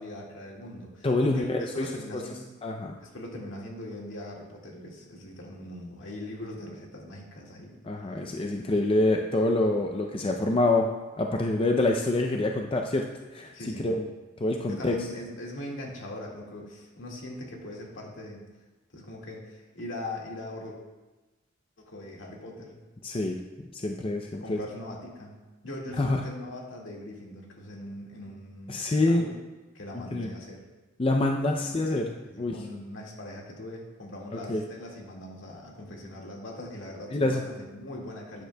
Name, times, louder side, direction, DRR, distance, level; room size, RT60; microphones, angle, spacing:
voice 1, 0.0-2.5 3.0-7.8 13.5-13.9 14.7-18.4 18.9-20.8 21.8-22.8 24.4-25.4 25.6-29.4 29.7-30.6 31.6-31.7 32.2-38.4, left 1 dB, 70° left, -2 dB, 1.9 m, -41 dB
voice 2, 1.0-2.2 2.6-3.0 7.8-10.9 11.2-13.1 13.3-13.5 13.8-14.1 14.4-14.9 23.0-24.6 26.0-26.2 28.7-29.2 29.9-30.3 31.0-32.6 34.5-34.6 37.1-37.4, left 2 dB, 25° left, 2 dB, 0.5 m, -26 dB
12.5 x 9.2 x 2.3 m, 1.2 s
head